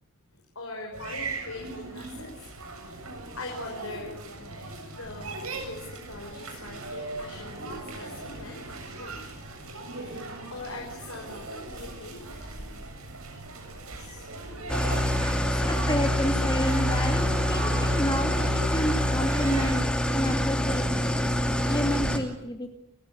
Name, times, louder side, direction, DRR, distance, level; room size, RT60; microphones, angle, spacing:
voice 1, 0.5-2.5 2.7-3.0 3.4-4.1 4.5-8.6 8.9-9.1 9.9-12.8 13.6-13.7 13.9-15.3 19.6-19.8, left 2 dB, 75° left, 0 dB, 5.8 m, -42 dB
sound 1, 0.9-19.8, right 3 dB, 85° right, 7.6 m, -39 dB
Engine starting / Idling, 14.7-22.2, left 1 dB, 5° left, 2.6 m, -26 dB
voice 2, 15.3-19.8 20.1-21.1 21.6-22.7, equal, 20° left, 4 dB, 2.5 m, -30 dB
30.0 x 15.5 x 9.8 m, 0.85 s
head